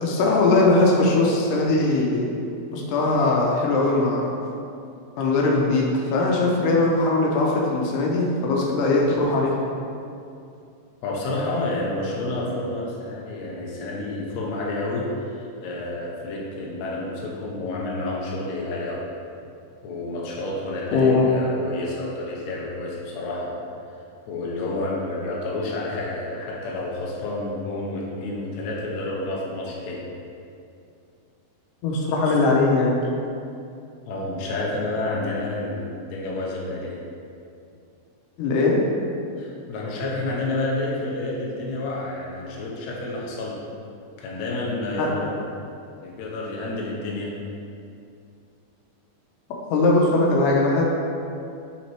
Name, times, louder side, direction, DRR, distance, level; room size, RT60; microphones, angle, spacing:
voice 1, 0.0-2.3 2.7-4.2 5.2-9.6 20.9-21.2 31.8-33.0 38.4-38.8 45.0-45.1 49.7-50.9, left 2 dB, 85° left, -2 dB, 2.4 m, -20 dB
voice 2, 11.0-19.0 19.8-23.6 24.3-30.0 32.2-32.4 34.1-37.0 39.4-43.6 44.2-45.3 46.0-47.3, left 2 dB, 70° left, -4 dB, 2.1 m, -29 dB
7.1 x 4.1 x 4.6 m, 2.5 s
omnidirectional pair, 3.6 m